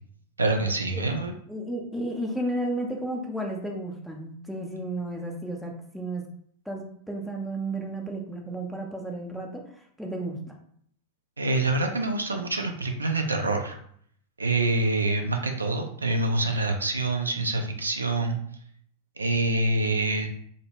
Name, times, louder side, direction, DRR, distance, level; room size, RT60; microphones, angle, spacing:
voice 1, 0.4-1.3 11.4-13.8 14.4-18.4 19.2-20.3, right 2 dB, 80° right, 4 dB, 0.3 m, -26 dB
voice 2, 1.5-6.2 6.7-9.6 10.0-10.6, right 1 dB, ahead, 0 dB, 0.5 m, -33 dB
2.1 x 2.0 x 3.2 m, 0.64 s
figure-of-eight pair, 90°, 0 cm